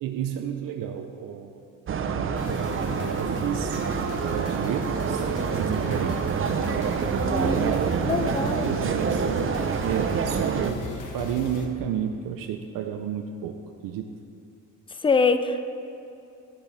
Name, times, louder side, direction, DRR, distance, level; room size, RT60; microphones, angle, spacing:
voice 1, 0.0-1.7 2.0-2.5 3.2-6.3 7.4-9.3 9.8-14.1, right 8 dB, 80° right, 5 dB, 0.6 m, -32 dB
sound 1, 1.9-10.7, right 6 dB, 40° right, 0.6 m, -27 dB
sound 2, 2.4-11.7, left 3 dB, 65° left, 1.3 m, -38 dB
voice 2, 7.2-7.7 8.1-8.8 15.0-15.7, left 4 dB, 15° left, 9 dB, 0.5 m, -24 dB
13.0 x 6.9 x 4.0 m, 2.7 s
cardioid pair, 100°, 33 cm